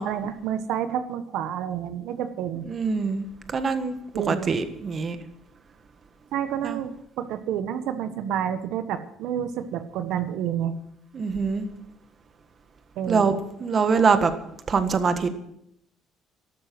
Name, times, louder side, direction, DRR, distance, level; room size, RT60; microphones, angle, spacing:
voice 1, 0.0-2.7 4.1-4.5 6.3-6.9 7.2-10.7 13.0-13.3, right 9 dB, 75° right, 10 dB, 1.4 m, -29 dB
voice 2, 2.7-3.2 3.5-5.2 6.6-6.8 11.1-11.7 13.1-14.3 14.7-15.3, right 5 dB, 35° right, 9 dB, 1.5 m, -24 dB
13.0 x 12.5 x 6.1 m, 0.77 s
cardioid pair, 140°, 0 cm